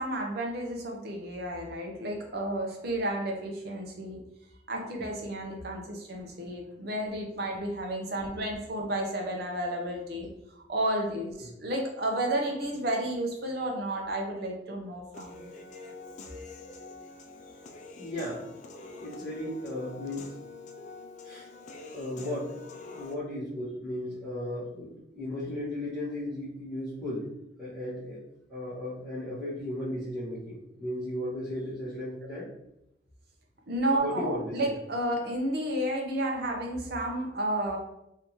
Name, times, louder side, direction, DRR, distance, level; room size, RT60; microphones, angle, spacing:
voice 1, 0.0-4.2 4.7-10.3 10.7-15.5 33.7-37.8, right 1 dB, 60° right, 1 dB, 0.7 m, -32 dB
Human voice / Piano, 15.1-23.1, left 3 dB, 40° left, 0.4 m, -45 dB
voice 2, 18.0-18.5 19.0-21.5 21.9-22.6 22.9-27.3 27.6-28.2 28.5-32.5 34.0-34.7, left 1 dB, 10° right, -15 dB, 1.4 m, -36 dB
3.5 x 2.7 x 3.0 m, 0.84 s
head